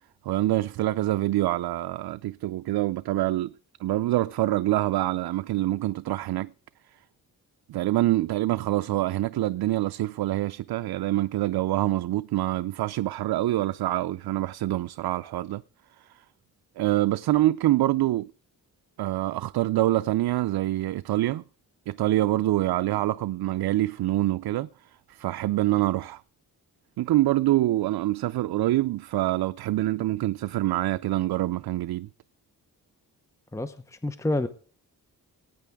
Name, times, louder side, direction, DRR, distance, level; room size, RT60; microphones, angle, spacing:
voice 1, 0.2-3.5 3.8-6.5 7.7-15.6 16.8-18.3 19.0-21.4 21.9-24.7 25.1-26.2 27.0-32.1, right 15 dB, 85° right, 0.5 m, -25 dB
voice 2, 33.5-34.5, left 1 dB, 10° left, 0.8 m, -28 dB
20.0 x 9.1 x 3.5 m
wide cardioid pair, 115°, 36 cm